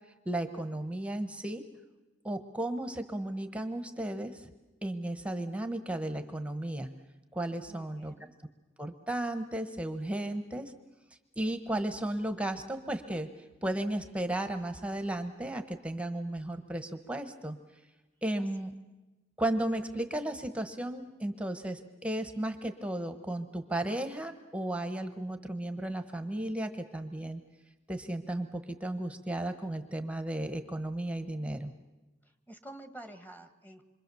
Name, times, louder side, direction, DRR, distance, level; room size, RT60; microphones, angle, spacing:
voice 1, 0.2-1.6 2.2-4.4 4.8-7.0 7.3-8.1 8.8-10.7 11.4-13.3 13.6-17.6 18.2-18.8 19.4-27.4 27.9-31.7, right 1 dB, 5° right, 8 dB, 1.1 m, -34 dB
voice 2, 7.7-8.3 18.4-18.7 32.2-33.8, right 1 dB, 10° left, 7 dB, 1.6 m, -49 dB
27.0 x 24.5 x 7.0 m, 1.1 s
head